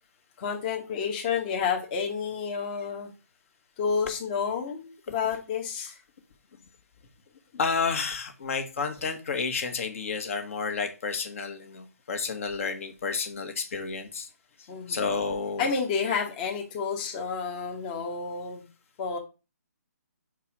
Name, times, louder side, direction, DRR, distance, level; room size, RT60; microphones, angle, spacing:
voice 1, 0.4-3.1 3.8-6.0 14.7-15.0 15.6-18.6 19.0-19.2, left 6 dB, 30° left, 1 dB, 1.1 m, -30 dB
voice 2, 7.5-14.3 14.9-15.7, left 5 dB, 55° left, 6 dB, 1.5 m, -31 dB
5.0 x 4.7 x 5.9 m, 0.32 s
figure-of-eight pair, 145°, 9 cm